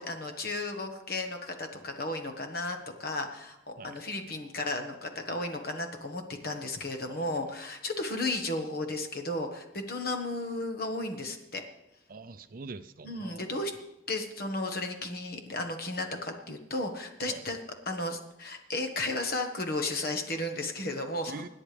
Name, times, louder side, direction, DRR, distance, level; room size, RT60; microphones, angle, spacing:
voice 1, 0.0-11.6 13.0-13.7 14.1-17.6 17.8-21.3, left 2 dB, 50° left, 5 dB, 1.4 m, -34 dB
voice 2, 12.1-13.5 17.3-17.4 21.3-21.5, right 3 dB, 45° right, 12 dB, 0.5 m, -44 dB
25.5 x 9.7 x 3.4 m, 0.93 s
head